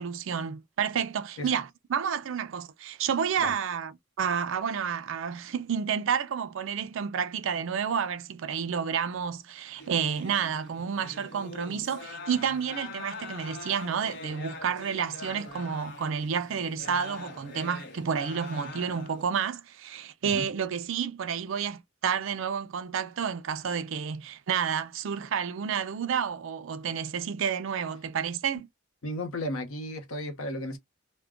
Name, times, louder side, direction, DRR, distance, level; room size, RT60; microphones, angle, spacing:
voice 1, 0.0-28.7, right 7 dB, 70° right, 0.4 m, -30 dB
sound 1, 9.8-19.2, left 3 dB, 55° left, 0.9 m, -43 dB
voice 2, 29.0-30.8, left 1 dB, 85° left, 0.9 m, -34 dB
2.3 x 2.1 x 3.5 m
head